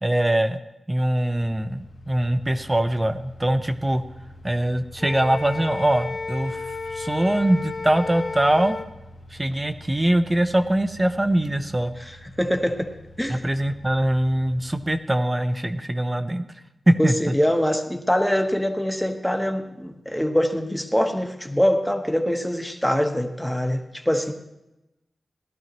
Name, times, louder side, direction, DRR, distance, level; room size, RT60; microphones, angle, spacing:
voice 1, 0.0-0.6 0.9-4.0 4.4-6.6 6.9-8.8 9.3-12.0 13.3-16.4 16.9-17.3, right 1 dB, 20° right, 9 dB, 0.7 m, -22 dB
sound 1, 1.3-14.9, left 1 dB, 80° left, 2.0 m, -46 dB
Wind instrument woodwind instrument, 5.0-8.9, left 4 dB, 60° left, 1.4 m, -32 dB
voice 2, 12.0-12.9 13.2-13.4 17.0-24.3, equal, ahead, 5 dB, 1.2 m, -24 dB
17.5 x 12.5 x 3.0 m, 0.94 s
wide cardioid pair, 95°, 0 cm